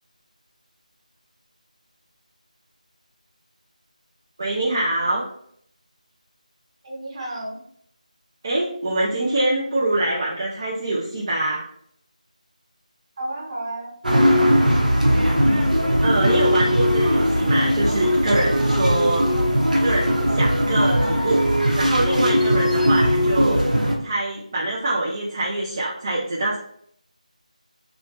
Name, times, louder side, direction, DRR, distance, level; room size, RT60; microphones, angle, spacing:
voice 1, 4.4-5.2 8.4-11.7 16.0-19.3 19.7-23.6 24.0-26.6, right 2 dB, 25° right, -5 dB, 0.4 m, -24 dB
voice 2, 6.8-7.6 13.2-14.6, right 1 dB, 40° right, -5 dB, 1.1 m, -33 dB
sound 1, 14.0-24.0, equal, 80° right, 0.7 m, -19 dB
2.5 x 2.1 x 2.9 m, 0.65 s
figure-of-eight pair, 165°, 4 cm